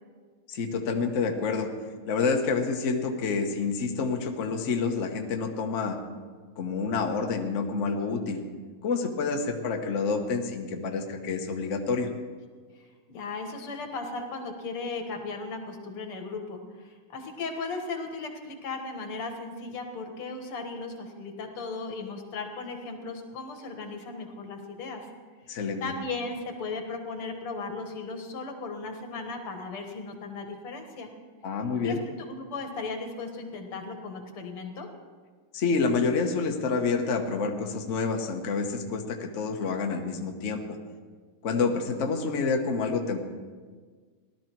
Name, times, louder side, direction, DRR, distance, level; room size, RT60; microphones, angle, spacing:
voice 1, 0.5-1.7 2.0-6.0 6.6-8.4 8.8-12.1 25.5-25.8 31.4-32.0 35.5-40.8 41.4-43.3, left 4 dB, 45° left, 3 dB, 1.1 m, -28 dB
voice 2, 12.7-25.1 25.8-31.1 31.8-34.9, left 3 dB, 85° left, 4 dB, 2.4 m, -36 dB
17.0 x 12.0 x 4.6 m, 1.5 s
omnidirectional pair, 2.4 m